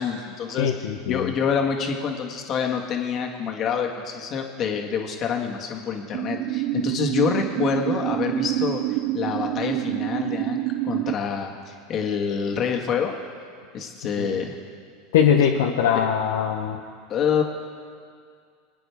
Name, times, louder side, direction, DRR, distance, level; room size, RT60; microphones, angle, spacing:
voice 1, 0.0-0.7 1.0-13.2 13.7-14.6 17.1-17.4, left 6 dB, 40° left, 2 dB, 1.8 m, -27 dB
voice 2, 0.6-1.3 14.2-14.3 15.1-16.8, left 8 dB, 75° left, 2 dB, 0.8 m, -21 dB
sound 1, 6.1-11.1, right 16 dB, 55° right, 0.4 m, -27 dB
24.0 x 9.3 x 3.5 m, 2.1 s
hypercardioid pair, 90°, 0 cm